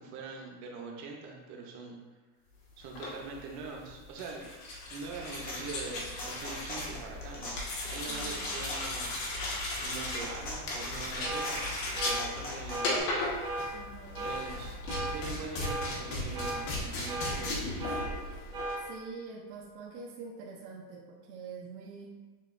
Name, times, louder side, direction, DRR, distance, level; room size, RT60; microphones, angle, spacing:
voice 1, 0.0-2.0 2.8-4.4 4.9-7.5 7.9-9.1 9.8-11.7 12.0-13.1 14.2-18.0, right 4 dB, 40° right, 0 dB, 0.8 m, -43 dB
sound 1, 2.8-18.8, left 2 dB, 85° left, 1.4 m, -36 dB
sound 2, 5.0-13.0, left 2 dB, 20° left, 0.7 m, -42 dB
voice 2, 8.1-8.5 13.7-14.3 18.8-22.1, right 4 dB, 80° right, -3 dB, 0.8 m, -45 dB
sound 3, 11.2-11.5 12.0-12.2 12.7-13.0 13.4-13.7 14.1-14.4 14.9-15.1 15.6-15.9 16.3-16.6 17.1-17.3 17.8-18.1 18.5-18.8, right 2 dB, 10° right, 0.3 m, -35 dB
7.2 x 2.5 x 2.5 m, 1.3 s
cardioid pair, 165°, 46 cm